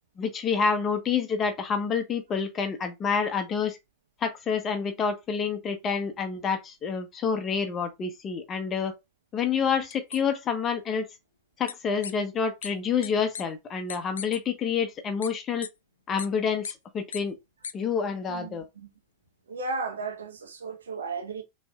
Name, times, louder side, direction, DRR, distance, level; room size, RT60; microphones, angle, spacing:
voice 1, 0.2-3.8 4.2-8.9 9.3-11.1 11.6-15.7 16.1-17.4 17.7-18.6, left 6 dB, 30° left, 1.2 m, -28 dB
sound 1, 9.9-10.2 11.7-11.8 12.0-12.1 12.6-12.7 13.0-13.1 13.3-13.4 13.9-14.4 15.2-15.3 15.6-15.7 16.2-16.3 16.6-16.7 17.1-17.2 17.6-17.7, left 7 dB, 75° left, 0.4 m, -36 dB
voice 2, 18.3-18.9 19.5-21.4, right 3 dB, 75° right, 1.2 m, -35 dB
6.0 x 3.3 x 2.4 m
figure-of-eight pair, 85°, 0 cm